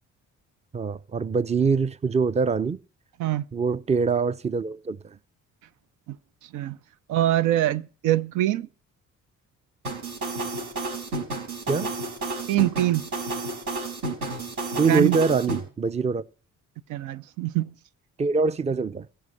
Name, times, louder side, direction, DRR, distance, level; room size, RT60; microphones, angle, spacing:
voice 1, 0.7-2.8 3.5-5.0 11.7-11.9 14.8-16.2 18.2-19.1, right 5 dB, 20° right, 0.6 m, -24 dB
voice 2, 6.4-6.8 7.1-8.7 12.5-13.1 14.8-15.2 16.9-17.7, right 14 dB, 90° right, 0.6 m, -24 dB
sound 1, 9.8-15.6, right 2 dB, 70° right, 5.3 m, -31 dB
16.0 x 5.7 x 8.3 m
cardioid pair, 90°, 30 cm